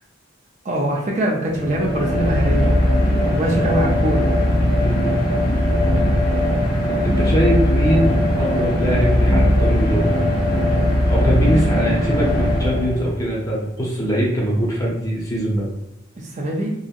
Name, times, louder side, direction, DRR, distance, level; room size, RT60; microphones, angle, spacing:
voice 1, 0.6-4.3 16.2-16.7, right 1 dB, 35° right, -2 dB, 0.5 m, -23 dB
sound 1, 1.5-13.4, left 1 dB, 50° left, 0.8 m, -19 dB
voice 2, 6.8-10.1 11.1-15.7, equal, 20° left, -4 dB, 0.7 m, -22 dB
2.8 x 2.6 x 2.4 m, 0.89 s
head